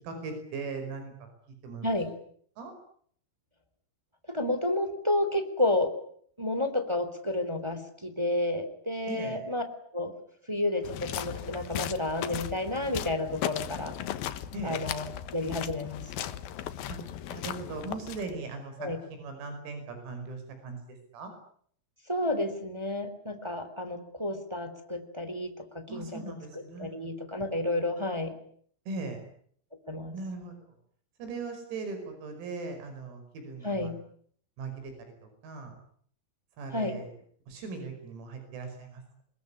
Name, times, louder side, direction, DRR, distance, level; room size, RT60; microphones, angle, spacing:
voice 1, 0.0-1.3 1.6-1.9 2.6-2.7 9.1-9.4 14.5-14.8 16.9-17.0 17.3-18.9 19.2-21.3 25.9-26.9 28.9-29.2 30.1-30.5 31.2-33.9 34.6-34.9 35.2-35.8 36.6-37.1 37.5-39.2, right 3 dB, 85° right, 6 dB, 8.1 m, -39 dB
voice 2, 1.8-2.1 4.3-5.9 6.4-9.6 9.9-10.1 10.5-13.9 14.6-16.3 18.8-19.0 22.1-26.2 26.5-28.4 29.9-30.2 33.6-34.0 36.7-37.0, left 1 dB, 10° right, 8 dB, 2.1 m, -31 dB
sound 1, 10.8-18.5, left 11 dB, 75° left, 2.2 m, -37 dB
26.5 x 21.5 x 9.9 m, 0.62 s
omnidirectional pair, 6.0 m